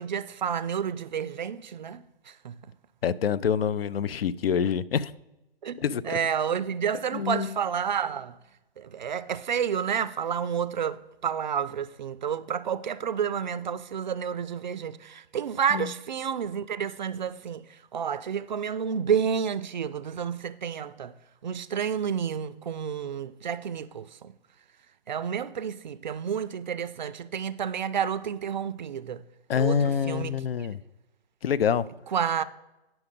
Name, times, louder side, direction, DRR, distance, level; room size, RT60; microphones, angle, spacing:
voice 1, 0.0-2.6 5.6-8.4 8.8-21.1 21.4-24.3 25.1-29.2 29.6-30.4 32.1-32.4, right 7 dB, 45° right, 0.4 m, -30 dB
voice 2, 3.0-5.1 5.8-6.2 7.1-7.5 15.7-15.9 29.5-30.8 31.4-31.8, left 7 dB, 65° left, 0.5 m, -26 dB
9.4 x 5.9 x 5.2 m
hypercardioid pair, 150°, 32 cm